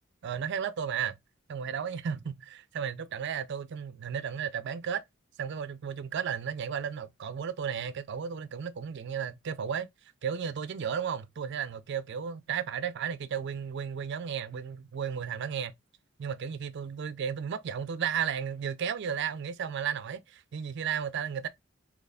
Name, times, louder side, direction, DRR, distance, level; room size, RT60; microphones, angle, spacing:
voice 1, 0.2-1.1 1.5-2.4 2.7-5.0 5.4-9.9 10.2-15.7 16.2-21.5, right 7 dB, 60° right, 0.4 m, -34 dB
4.0 x 3.0 x 2.3 m
head